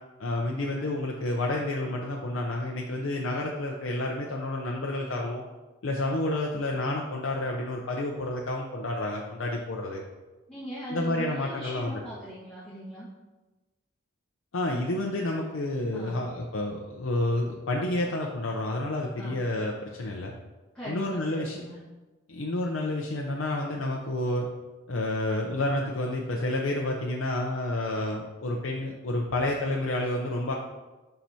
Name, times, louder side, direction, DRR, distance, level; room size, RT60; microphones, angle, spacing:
voice 1, 0.2-5.4 5.8-10.0 10.9-12.0 14.5-20.3 20.9-21.6 22.3-24.5 24.9-30.5, left 1 dB, 65° left, -1 dB, 0.6 m, -30 dB
voice 2, 10.5-13.1 15.9-16.2 19.2-19.4 20.7-21.8, equal, 5° left, -11 dB, 1.3 m, -40 dB
7.2 x 5.8 x 2.7 m, 1.2 s
head